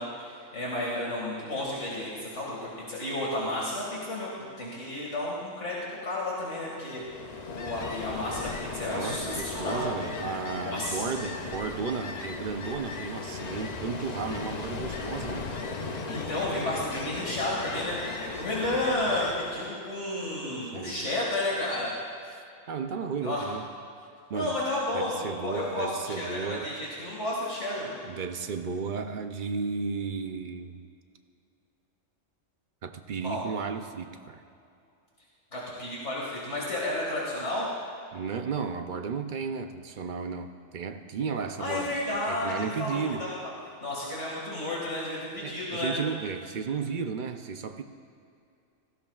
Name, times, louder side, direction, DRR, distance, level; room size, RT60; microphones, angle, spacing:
voice 1, 0.0-4.3 4.6-7.0 7.5-10.0 10.6-11.1 16.1-21.9 23.2-23.5 24.3-27.9 33.2-33.4 35.5-37.7 41.6-43.4 43.8-45.9, left 1 dB, 65° left, -5 dB, 2.4 m, -32 dB
Ocean, 7.0-19.8, left 4 dB, 40° left, 0.7 m, -37 dB
voice 2, 8.9-15.6 20.6-21.1 22.3-23.6 24.3-24.6 24.9-26.7 28.0-30.8 32.8-34.4 38.1-43.3 45.4-47.8, right 5 dB, 50° right, 7 dB, 0.6 m, -34 dB
17.5 x 15.0 x 2.4 m, 2.6 s
omnidirectional pair, 1.3 m